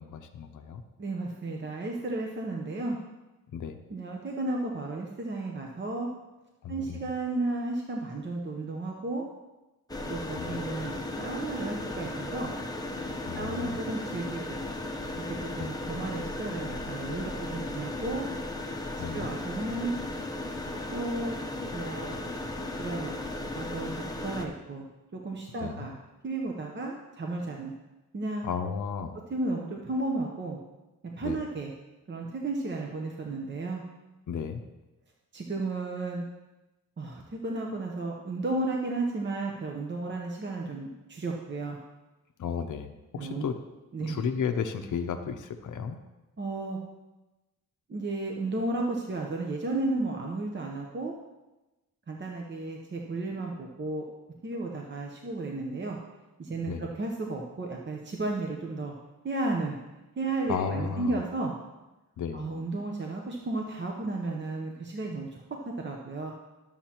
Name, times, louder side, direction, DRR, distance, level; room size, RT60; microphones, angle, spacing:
voice 1, 0.0-0.8 3.5-3.7 6.6-7.1 10.4-10.6 13.3-13.8 15.6-15.7 19.0-19.3 25.6-25.9 28.4-29.2 31.2-31.4 34.3-34.6 42.4-43.5 44.0-46.0 56.7-56.9 60.5-61.3 62.2-62.5, left 7 dB, 65° left, 5 dB, 0.6 m, -34 dB
voice 2, 1.0-3.0 3.9-6.1 6.7-9.2 10.1-12.5 13.3-14.6 15.6-18.3 19.0-19.9 20.9-21.4 21.7-22.2 22.8-23.1 23.5-23.9 24.2-24.9 25.1-26.0 26.2-27.7 28.1-28.5 29.3-30.6 31.0-31.7 32.1-33.8 35.3-36.2 37.0-41.8 43.1-43.4 43.9-44.3 46.4-46.8 47.9-51.1 52.1-54.0 54.4-56.0 56.4-58.9 59.2-59.8 60.2-61.5 62.3-65.4 65.8-66.3, right 2 dB, 35° right, 0 dB, 0.8 m, -33 dB
sound 1, 9.9-24.5, left 2 dB, 10° left, 0.8 m, -36 dB
12.0 x 7.3 x 2.9 m, 1.1 s
wide cardioid pair, 130°, 33 cm